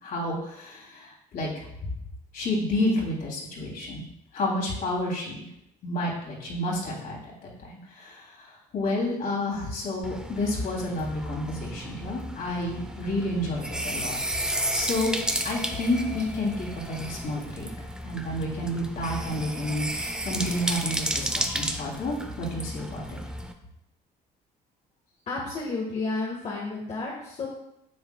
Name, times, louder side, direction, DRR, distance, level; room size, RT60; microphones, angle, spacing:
voice 1, 0.0-1.9 2.3-4.0 4.3-5.5 5.8-14.2 14.7-15.1 15.4-17.7 18.0-23.2, left 1 dB, 60° left, -3 dB, 3.2 m, -30 dB
sound 1, 10.0-23.5, right 1 dB, 5° right, 0.7 m, -33 dB
voice 2, 25.3-27.5, left 3 dB, 40° left, -3 dB, 1.6 m, -31 dB
9.5 x 7.2 x 2.3 m, 0.82 s
cardioid pair, 110°, 17 cm